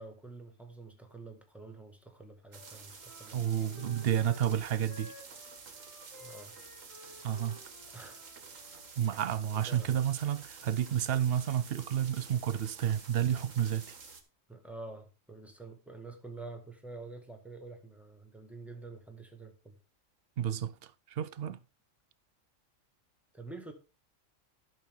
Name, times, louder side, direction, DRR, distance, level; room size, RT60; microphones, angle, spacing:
voice 1, 0.0-3.4 3.8-4.2 6.2-6.5 7.9-8.2 8.6-8.8 9.5-10.0 14.5-19.7 21.5-21.6 23.3-23.7, right 3 dB, ahead, 1.7 m, -48 dB
Wind instrument woodwind instrument, 2.5-8.9, left 1 dB, 85° left, 5.2 m, -55 dB
sound 1, 2.5-14.2, right 5 dB, 85° right, 1.9 m, -50 dB
voice 2, 3.3-5.1 7.2-7.6 9.0-14.0 20.4-21.6, right 9 dB, 60° right, 0.7 m, -31 dB
12.0 x 6.4 x 3.7 m
omnidirectional pair, 1.3 m